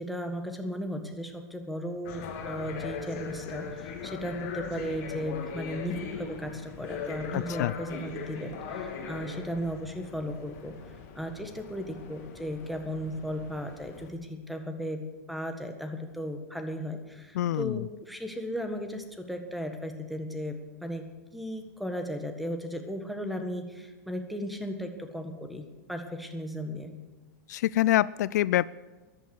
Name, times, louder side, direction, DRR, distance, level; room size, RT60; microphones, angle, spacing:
voice 1, 0.0-27.0, equal, ahead, 5 dB, 1.6 m, -36 dB
sound 1, 2.0-14.1, left 5 dB, 50° left, 2.9 m, -40 dB
voice 2, 7.3-7.7 17.4-17.8 27.5-28.7, left 14 dB, 70° left, 20 dB, 0.4 m, -25 dB
14.5 x 11.0 x 6.4 m, 1.2 s
hypercardioid pair, 135°, 9 cm